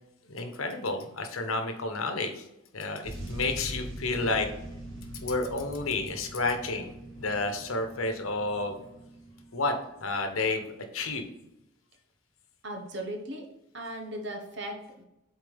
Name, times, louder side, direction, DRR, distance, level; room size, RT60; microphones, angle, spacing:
voice 1, 0.3-2.5 2.7-4.5 5.2-8.8 9.5-9.7 10.0-10.7 10.9-11.3, left 3 dB, 85° left, 6 dB, 1.1 m, -30 dB
sound 1, 3.0-10.6 11.3-11.4, right 1 dB, 75° right, 1.7 m, -43 dB
voice 2, 12.6-13.5 13.7-15.0, right 1 dB, 55° right, 3 dB, 1.2 m, -37 dB
7.7 x 4.2 x 3.5 m, 0.89 s
head